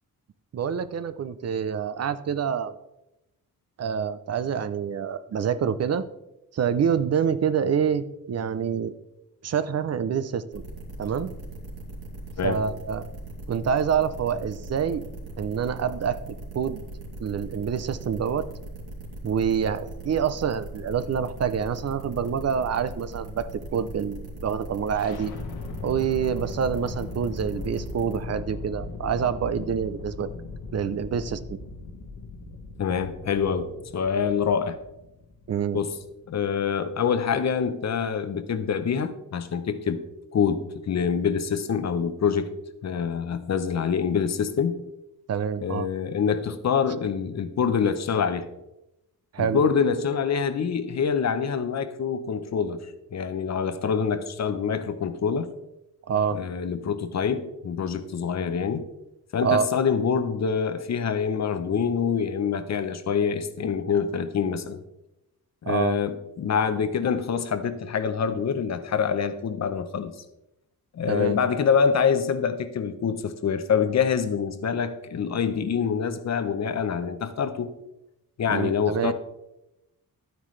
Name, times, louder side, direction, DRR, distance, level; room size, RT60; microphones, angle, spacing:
voice 1, 0.5-2.7 3.8-6.0 6.5-8.9 9.4-10.6 11.0-11.3 12.4-13.0 13.5-15.0 15.4-16.2 16.5-16.8 17.2-18.5 19.2-25.3 25.8-30.3 30.7-31.6 35.5-35.8 45.3-45.9 49.3-49.6 56.1-56.4 59.4-59.7 65.7-66.0 71.1-71.4 78.5-79.1, right 7 dB, 45° right, 14 dB, 0.5 m, -26 dB
sound 1, 10.5-28.2, right 2 dB, 85° right, 2.9 m, -39 dB
sound 2, 25.0-36.8, left 3 dB, 85° left, 1.5 m, -39 dB
voice 2, 32.8-34.8 35.7-36.0 36.3-40.0 40.3-42.5 42.8-44.8 45.6-48.5 49.4-52.8 53.1-55.5 56.3-58.9 59.3-64.8 65.6-70.1 70.9-77.7 78.4-79.1, left 6 dB, 45° left, 11 dB, 0.8 m, -25 dB
11.5 x 9.3 x 3.2 m, 0.91 s
wide cardioid pair, 140°, 36 cm